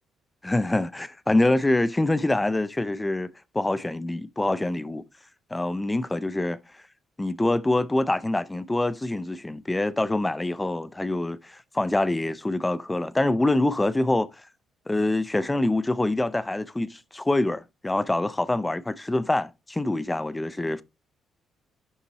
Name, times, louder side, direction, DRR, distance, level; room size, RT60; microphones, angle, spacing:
voice 1, 0.4-5.0 5.5-6.6 7.2-14.4 14.9-20.8, left 2 dB, 15° left, 0.5 m, -25 dB
11.0 x 3.9 x 2.9 m
cardioid pair, 90°, 0 cm